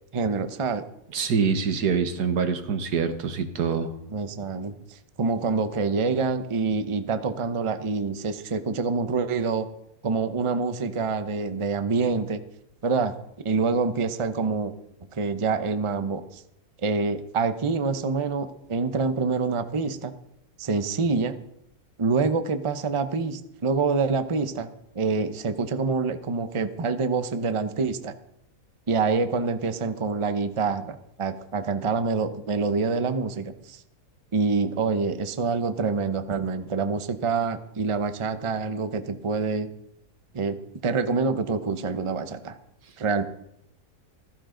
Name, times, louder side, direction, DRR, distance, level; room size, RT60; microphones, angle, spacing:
voice 1, 0.1-0.9 4.1-9.7 10.0-12.4 12.8-13.1 13.4-14.7 15.1-16.4 16.8-20.1 20.6-21.3 22.0-24.7 24.9-28.1 28.9-33.8 34.3-39.7 40.3-40.6 40.8-42.6 43.0-43.2, right 4 dB, 30° right, 10 dB, 0.6 m, -26 dB
voice 2, 1.1-3.9, right 6 dB, 90° right, 9 dB, 1.7 m, -25 dB
15.0 x 14.5 x 3.9 m, 0.78 s
omnidirectional pair, 1.7 m